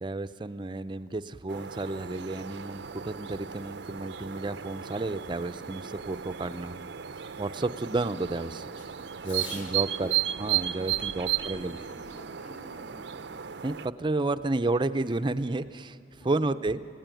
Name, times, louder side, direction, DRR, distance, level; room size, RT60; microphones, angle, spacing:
voice 1, 0.0-6.8 7.4-8.7 9.2-11.8 13.6-16.8, right 2 dB, 25° right, 11 dB, 0.5 m, -31 dB
sound 1, 1.5-13.9, right 10 dB, 75° right, 0.6 m, -35 dB
Fireworks, 2.7-9.8 11.0-12.6, left 4 dB, 65° left, 3.3 m, -53 dB
voice 2, 9.8-10.3 10.9-13.3 16.2-16.9, equal, 50° left, 0 dB, 3.9 m, -51 dB
28.5 x 16.5 x 9.1 m, 2.6 s
head